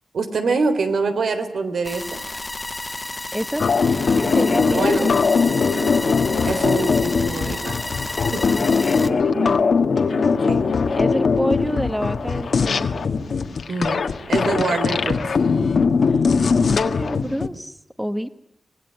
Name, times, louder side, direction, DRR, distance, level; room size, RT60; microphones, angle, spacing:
voice 1, 0.1-2.2 4.6-5.0 6.4-7.8 8.3-8.7 9.0-9.1 10.4-10.7 13.7-14.0 14.3-15.2, right 4 dB, 85° right, 8 dB, 3.5 m, -25 dB
sound 1, 1.8-9.1, left 2 dB, 20° left, 1.3 m, -31 dB
voice 2, 3.3-3.7 4.0-5.3 9.0-9.7 10.9-12.9 16.1-16.2 16.7-18.3, equal, 5° right, 10 dB, 1.1 m, -28 dB
sound 2, 3.6-17.5, left 5 dB, 70° left, 1.6 m, -20 dB
25.0 x 20.0 x 9.5 m, 0.77 s
wide cardioid pair, 150°, 0 cm